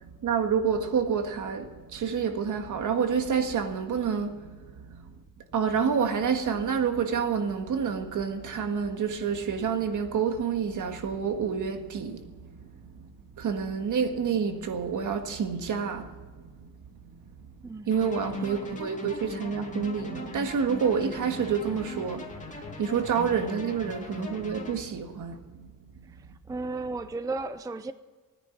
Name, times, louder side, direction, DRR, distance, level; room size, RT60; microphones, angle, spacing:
voice 1, 0.0-4.6 4.9-5.0 5.5-12.5 13.0-13.1 13.4-16.1 17.9-25.7, right 6 dB, 55° right, 1.7 m, -28 dB
voice 2, 17.6-18.0 22.5-22.6 26.1-27.9, right 3 dB, 10° right, 0.5 m, -35 dB
sound 1, 17.9-24.8, left 2 dB, 20° left, 2.5 m, -40 dB
17.5 x 10.0 x 7.1 m
cardioid pair, 125°, 36 cm